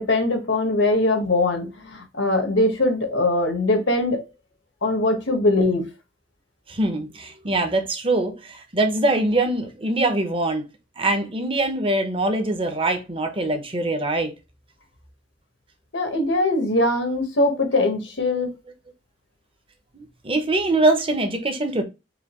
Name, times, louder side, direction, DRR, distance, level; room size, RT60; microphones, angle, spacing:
voice 1, 0.0-4.2 4.8-5.9 15.9-18.5, left 2 dB, 90° left, 1.4 m, -21 dB
voice 2, 6.7-10.7 11.0-14.3 19.9-21.8, right 2 dB, 30° right, 0.9 m, -23 dB
4.9 x 2.9 x 3.0 m
head